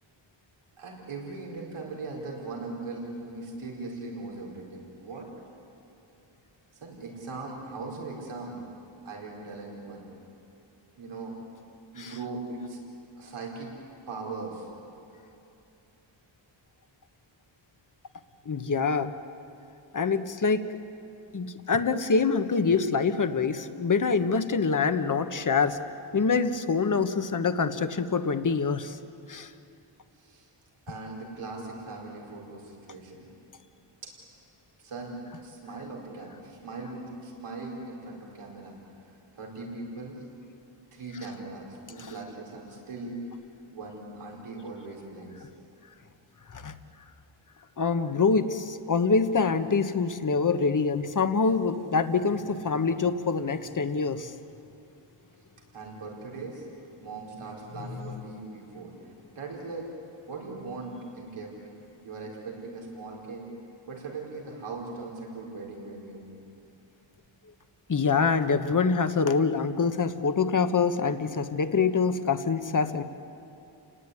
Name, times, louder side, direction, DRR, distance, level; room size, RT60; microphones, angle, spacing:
voice 1, 0.8-5.3 6.7-8.6 9.0-10.1 11.0-11.4 11.9-12.8 13.2-13.8 14.1-14.7 30.2-30.5 30.9-33.3 34.0-34.1 34.8-38.8 39.3-40.2 40.9-43.2 43.7-45.5 55.7-56.7 57.0-59.9 60.3-61.5 62.0-63.4 63.9-66.2, right 3 dB, 90° right, -1 dB, 4.7 m, -39 dB
voice 2, 18.4-19.1 19.9-20.7 21.3-25.8 26.1-29.0 29.3-29.5 42.0-42.1 46.5-46.7 47.8-54.3 67.9-73.0, left 5 dB, 40° left, 9 dB, 1.3 m, -25 dB
30.0 x 19.0 x 9.8 m, 2.8 s
wide cardioid pair, 110°, 48 cm